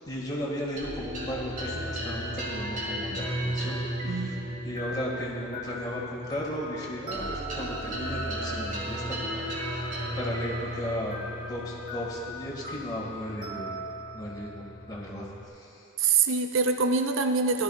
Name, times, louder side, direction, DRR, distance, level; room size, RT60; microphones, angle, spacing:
voice 1, 0.1-3.8 4.1-4.4 4.6-9.4 9.7-9.8 10.2-11.2 11.5-13.8 14.1-15.2 15.6-15.7, equal, 20° left, -4 dB, 2.0 m, -35 dB
sound 1, 0.8-15.5, equal, 45° right, 2.3 m, -35 dB
voice 2, 4.0-4.6 16.0-17.6, right 4 dB, 85° right, 7 dB, 0.5 m, -25 dB
17.0 x 12.0 x 2.5 m, 3.0 s
head